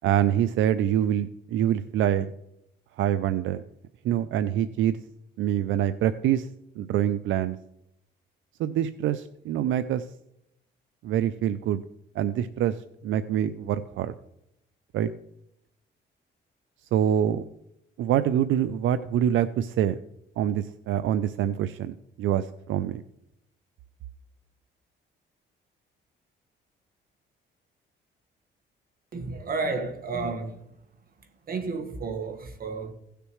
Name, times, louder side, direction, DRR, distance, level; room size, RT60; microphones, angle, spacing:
voice 1, 0.0-2.3 3.0-3.6 4.0-5.0 5.4-6.5 6.8-7.6 8.6-10.1 11.0-11.8 12.2-12.8 13.0-14.1 14.9-15.1 16.9-17.5 18.0-20.0 20.4-23.0, right 10 dB, 80° right, 0.5 m, -25 dB
voice 2, 29.1-30.6 31.2-32.9, right 4 dB, 45° right, 1.6 m, -32 dB
16.5 x 6.7 x 3.1 m
cardioid pair, 90°, 20 cm